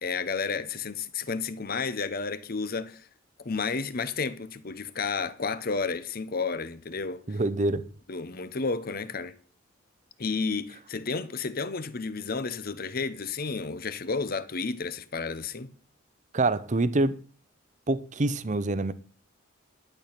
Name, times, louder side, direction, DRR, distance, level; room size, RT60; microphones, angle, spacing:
voice 1, 0.0-3.1 3.4-7.2 8.1-9.3 10.2-15.7, left 4 dB, 50° left, 0.9 m, -31 dB
voice 2, 7.3-7.8 16.3-17.2 17.9-18.9, right 2 dB, 35° right, 0.7 m, -26 dB
11.5 x 8.6 x 5.9 m
head